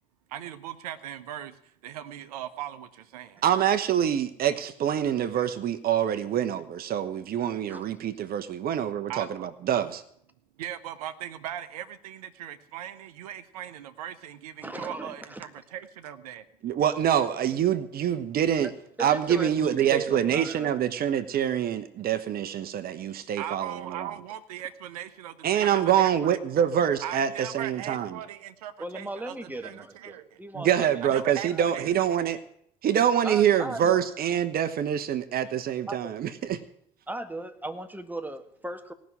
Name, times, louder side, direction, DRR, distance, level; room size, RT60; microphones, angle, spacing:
voice 1, 0.3-1.6 1.8-3.4 9.1-9.3 10.6-16.4 23.4-26.1 27.0-30.4 31.0-31.9, right 11 dB, 85° right, 12 dB, 1.0 m, -39 dB
voice 2, 3.4-10.0 16.6-18.7 19.0-24.1 25.4-28.2 30.5-32.4 32.8-36.6, right 9 dB, 55° right, 11 dB, 1.1 m, -25 dB
voice 3, 14.6-15.5 18.6-18.7 19.0-20.7 28.8-31.7 33.2-34.0 35.9-36.0 37.1-38.9, right 2 dB, 10° right, 7 dB, 1.8 m, -37 dB
18.0 x 6.3 x 9.6 m, 0.69 s
hypercardioid pair, 55°, 19 cm